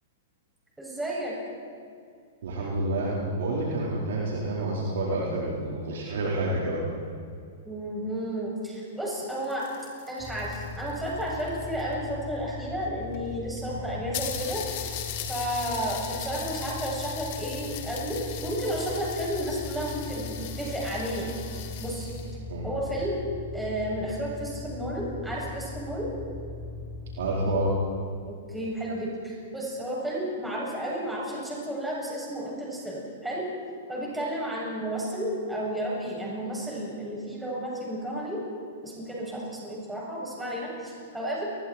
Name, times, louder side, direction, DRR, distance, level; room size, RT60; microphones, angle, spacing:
voice 1, 0.8-1.3 7.6-9.7 10.1-14.6 15.2-21.4 21.8-22.1 22.6-23.2 23.5-26.1 28.3-33.5 33.9-38.5 38.8-41.4, right 1 dB, 5° right, -5 dB, 7.6 m, -32 dB
voice 2, 2.4-6.8 13.7-13.9 22.5-22.6 27.2-27.8, right 2 dB, 70° right, -5 dB, 4.5 m, -28 dB
sound 1, 9.2-11.9 12.8-12.9 13.1-13.2 13.6-13.7 14.1-22.3, left 10 dB, 50° left, 3.3 m, -39 dB
sound 2, 10.2-27.7, left 3 dB, 10° left, 3.1 m, -39 dB
29.0 x 21.5 x 4.6 m, 2.3 s
hypercardioid pair, 115°, 0 cm